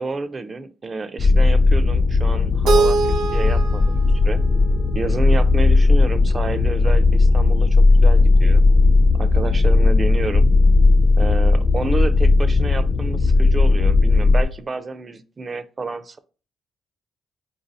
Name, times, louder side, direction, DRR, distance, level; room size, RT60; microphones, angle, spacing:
voice 1, 0.0-3.0 3.3-4.4 4.9-8.6 9.2-10.4 11.2-16.2, right 3 dB, 35° right, 12 dB, 0.4 m, -29 dB
sound 1, 1.2-14.4, left 3 dB, 40° left, 0.5 m, -16 dB
Keyboard (musical), 2.7-5.6, right 4 dB, 75° right, 0.6 m, -24 dB
3.9 x 2.7 x 3.9 m, 0.36 s
cardioid pair, 90°, 0 cm